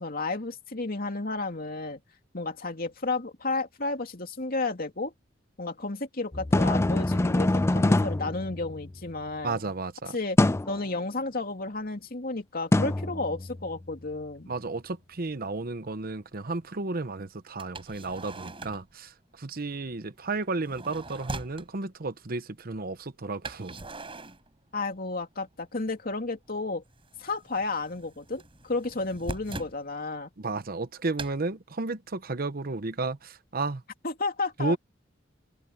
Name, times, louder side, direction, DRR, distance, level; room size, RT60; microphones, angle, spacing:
voice 1, 0.0-2.0 2.3-5.1 5.6-9.6 10.1-10.4 10.7-14.5 24.7-26.8 27.2-30.3 34.0-34.8, left 3 dB, 50° left, 2.7 m, -32 dB
sound 1, 6.3-9.1 10.4-10.8 12.7-13.8, left 2 dB, 15° left, 0.4 m, -25 dB
voice 2, 9.4-10.2 14.5-23.8 30.4-33.8 34.6-34.8, right 3 dB, 50° right, 1.0 m, -33 dB
sound 2, 14.5-14.6 15.3-15.4 17.6-18.9 20.4-21.7 23.4-25.1 25.4-26.2 26.5-29.8 31.2-31.4, right 2 dB, 30° right, 4.9 m, -41 dB
head